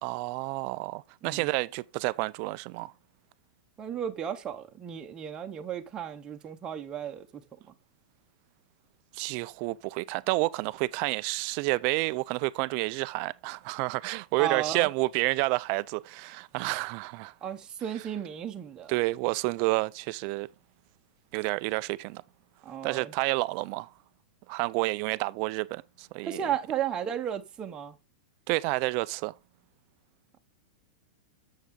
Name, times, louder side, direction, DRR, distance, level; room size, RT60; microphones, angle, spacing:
voice 1, 0.0-2.9 9.1-17.3 18.9-20.5 21.3-22.2 22.8-23.9 24.5-26.4 28.5-29.3, right 22 dB, 30° right, 0.4 m, -29 dB
voice 2, 3.8-7.4 14.4-14.9 17.4-19.0 22.6-23.1 26.2-27.9, right 9 dB, 15° right, 0.8 m, -34 dB
8.3 x 7.4 x 3.7 m
supercardioid pair, 170°, 5 cm